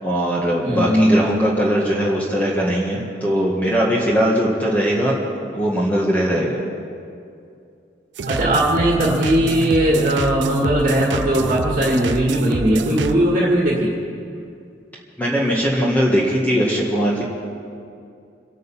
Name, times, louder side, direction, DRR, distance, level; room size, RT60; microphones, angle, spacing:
voice 1, 0.0-5.2 5.5-6.6 15.2-17.2, equal, 10° left, -4 dB, 1.8 m, -20 dB
voice 2, 0.6-1.3 8.3-13.9, equal, 40° right, -2 dB, 2.0 m, -18 dB
sound 1, 8.2-13.2, right 4 dB, 85° right, 0.5 m, -26 dB
26.5 x 9.3 x 5.8 m, 2.5 s
head